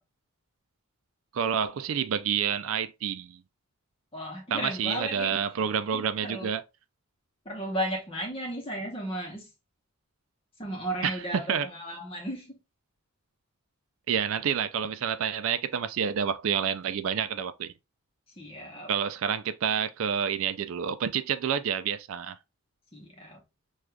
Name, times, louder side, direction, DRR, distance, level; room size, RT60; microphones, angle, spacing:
voice 1, 1.3-3.4 4.5-6.6 11.0-11.1 11.5-11.7 14.1-17.7 18.9-22.4, right 7 dB, 65° right, 0.3 m, -28 dB
voice 2, 4.1-5.4 5.9-6.5 7.4-9.5 10.6-12.6 18.3-18.9 22.9-23.4, equal, 25° left, 0.8 m, -35 dB
6.2 x 2.4 x 2.2 m
head